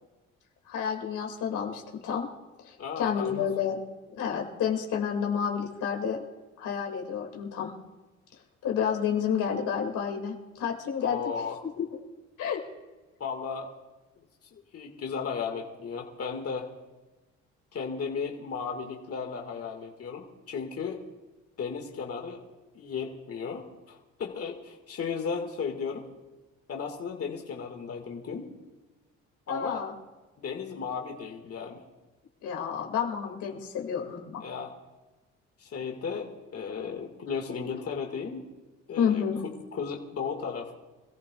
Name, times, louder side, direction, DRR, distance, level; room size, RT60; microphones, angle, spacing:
voice 1, 0.7-2.3 2.6-3.8 4.1-6.2 6.6-7.7 8.6-11.2 11.8-11.9 12.4-12.6 29.5-29.9 32.4-34.4 39.0-39.4, left 7 dB, 85° left, 1 dB, 2.3 m, -30 dB
voice 2, 2.8-3.5 11.0-11.6 13.2-13.7 14.5-16.7 17.7-21.0 21.6-22.4 22.7-26.1 26.7-28.5 29.5-29.8 30.4-31.8 34.4-34.7 35.6-38.5 38.9-40.7, left 6 dB, 50° left, 2 dB, 1.8 m, -35 dB
25.5 x 14.5 x 2.3 m, 1.2 s
cardioid pair, 90°, 30 cm